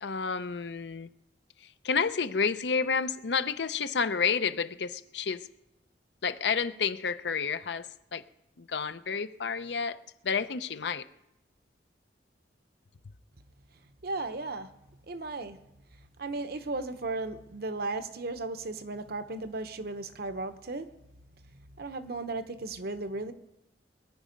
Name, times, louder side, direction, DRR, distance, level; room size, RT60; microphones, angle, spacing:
voice 1, 0.0-1.1 1.8-5.4 6.2-7.9 8.1-8.2 8.7-10.0 10.2-11.0, left 5 dB, 70° left, 0.6 m, -30 dB
voice 2, 14.0-14.7 15.1-15.6 16.2-20.9 21.8-23.3, right 2 dB, 60° right, 0.9 m, -35 dB
21.5 x 10.0 x 5.2 m
head